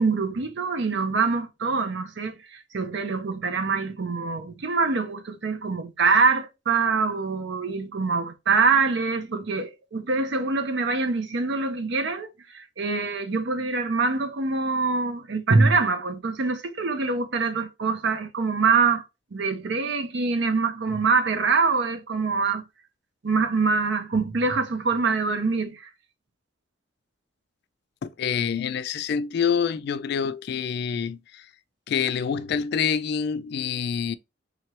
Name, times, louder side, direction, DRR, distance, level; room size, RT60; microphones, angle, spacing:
voice 1, 0.0-19.0 19.3-22.6 23.2-25.9, right 4 dB, 65° right, 0.6 m, -24 dB
voice 2, 28.0-31.5 31.9-34.2, left 7 dB, 55° left, 0.3 m, -26 dB
3.7 x 3.2 x 2.9 m
head